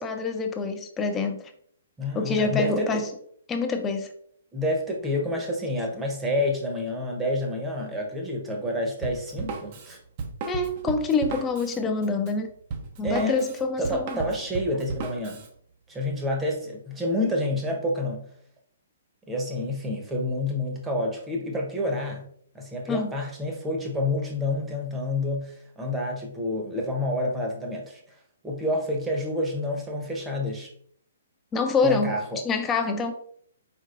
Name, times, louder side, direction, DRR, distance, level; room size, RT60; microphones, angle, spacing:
voice 1, 0.0-1.4 2.1-3.1 3.5-4.1 10.5-12.5 13.0-14.2 22.9-23.1 31.5-32.1 32.4-33.1, left 4 dB, 15° left, 6 dB, 0.6 m, -26 dB
voice 2, 2.0-3.0 4.5-10.0 13.0-13.5 13.8-15.4 15.9-18.3 19.3-22.3 22.5-28.0 28.4-30.7 31.8-32.4, left 1 dB, 10° right, 1 dB, 1.0 m, -28 dB
Drum kit, 9.0-15.5, right 4 dB, 40° right, 0.7 m, -35 dB
4.5 x 4.5 x 2.5 m, 0.64 s
figure-of-eight pair, 125°, 0 cm